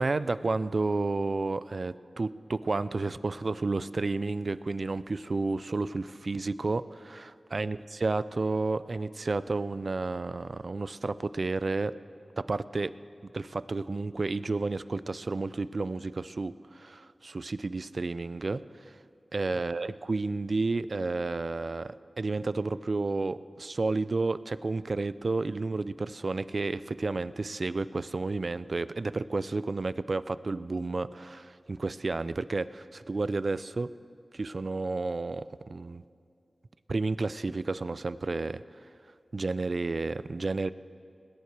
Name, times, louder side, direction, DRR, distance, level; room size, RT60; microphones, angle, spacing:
voice 1, 0.0-11.9 12.4-12.9 13.3-19.0 19.3-33.9 34.3-36.0 36.9-38.6 39.3-40.7, right 3 dB, 60° right, 16 dB, 0.3 m, -31 dB
20.5 x 8.4 x 4.6 m, 2.3 s
cardioid pair, 50°, 0 cm